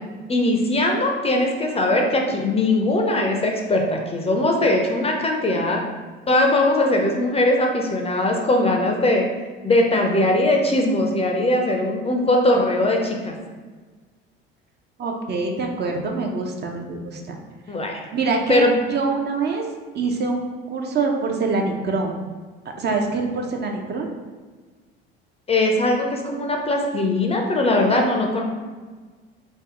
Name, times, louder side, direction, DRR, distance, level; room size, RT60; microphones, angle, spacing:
voice 1, 0.3-5.8 6.3-9.3 9.6-13.3 17.7-18.0 18.5-18.7 25.5-28.4, left 1 dB, 20° left, 1 dB, 0.5 m, -20 dB
voice 2, 15.0-17.4 18.1-19.6 19.9-22.2 22.8-24.1, right 3 dB, 35° right, 2 dB, 0.5 m, -25 dB
3.4 x 2.0 x 3.6 m, 1.4 s
hypercardioid pair, 65°, 29 cm